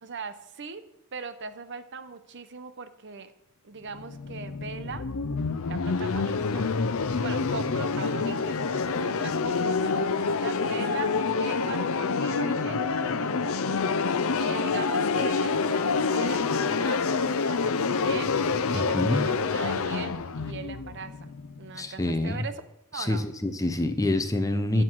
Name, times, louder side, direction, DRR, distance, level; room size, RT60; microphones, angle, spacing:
voice 1, 0.0-0.8 1.1-3.3 3.6-5.1 5.7-6.7 7.2-13.6 14.3-21.3 21.6-22.5 22.9-23.3 24.7-24.8, right 5 dB, 55° right, 11 dB, 0.9 m, -40 dB
sound 1, 3.9-21.8, left 4 dB, 65° left, 0.6 m, -27 dB
voice 2, 18.7-19.2 21.8-22.4 22.9-24.8, left 1 dB, 15° left, 8 dB, 0.8 m, -26 dB
15.0 x 7.7 x 4.7 m, 0.84 s
head